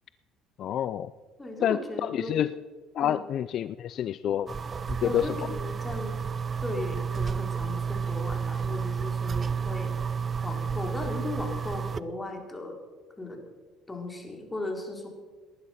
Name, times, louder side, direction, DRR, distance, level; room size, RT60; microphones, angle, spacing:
voice 1, 0.6-1.1 1.6-2.5 2.9-4.5 4.9-5.4, left 10 dB, 60° left, 16 dB, 0.4 m, -28 dB
voice 2, 1.4-2.4 3.0-3.2 5.0-6.1 6.6-10.0 10.4-12.8 13.2-13.4 13.9-15.1, left 2 dB, 15° left, 2 dB, 3.9 m, -36 dB
sound 1, 4.5-12.0, right 6 dB, 35° right, 0.6 m, -31 dB
19.0 x 11.0 x 5.8 m, 1.4 s
supercardioid pair, 80°, 0 cm